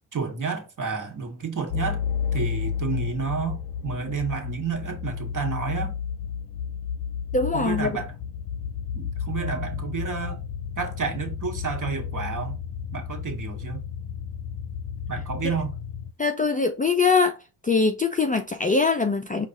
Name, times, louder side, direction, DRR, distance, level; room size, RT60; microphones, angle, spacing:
voice 1, 0.1-2.0 2.3-5.9 7.5-8.1 8.9-10.4 10.8-12.6 12.9-13.8 15.1-15.8, right 5 dB, 40° right, 1.6 m, -30 dB
sound 1, 1.7-16.1, left 7 dB, 80° left, 0.7 m, -32 dB
voice 2, 7.3-8.0 16.2-17.4 17.6-19.5, left 4 dB, 15° left, 0.5 m, -22 dB
4.6 x 2.5 x 3.9 m
supercardioid pair, 55°, 50 cm